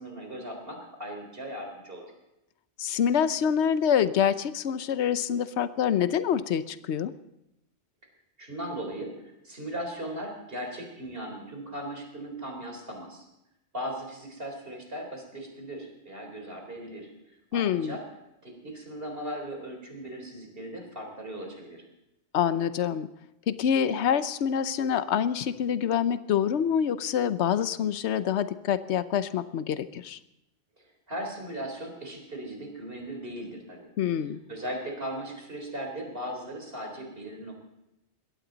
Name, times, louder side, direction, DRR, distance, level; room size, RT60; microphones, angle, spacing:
voice 1, 0.0-2.1 8.4-13.2 13.7-17.1 17.5-18.0 18.4-21.8 31.1-33.9 34.5-37.6, right 1 dB, 55° right, 2 dB, 4.0 m, -38 dB
voice 2, 2.8-7.1 17.5-18.0 22.3-23.1 23.5-30.2 34.0-34.4, left 8 dB, 75° left, 13 dB, 1.0 m, -26 dB
21.5 x 16.5 x 4.0 m, 0.88 s
omnidirectional pair, 1.2 m